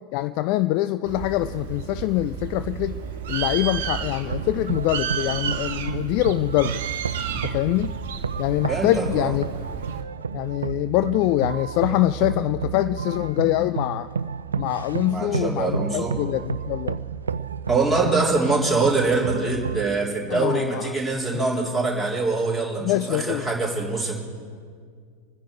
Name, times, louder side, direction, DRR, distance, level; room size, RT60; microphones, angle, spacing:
voice 1, 0.1-3.0 3.3-6.8 7.3-7.9 8.4-9.4 10.3-14.1 14.6-17.0 20.3-20.9 21.3-21.5 22.8-23.4, left 15 dB, 45° left, 13 dB, 0.3 m, -24 dB
Bird, 1.1-10.0, right 8 dB, 55° right, 1.1 m, -32 dB
sound 1, 4.2-19.9, right 6 dB, 70° right, 0.4 m, -31 dB
voice 2, 8.7-9.3 15.1-16.2 17.7-24.1, right 3 dB, 5° left, -2 dB, 3.8 m, -24 dB
28.0 x 10.0 x 4.8 m, 2.1 s
figure-of-eight pair, 90°, 0 cm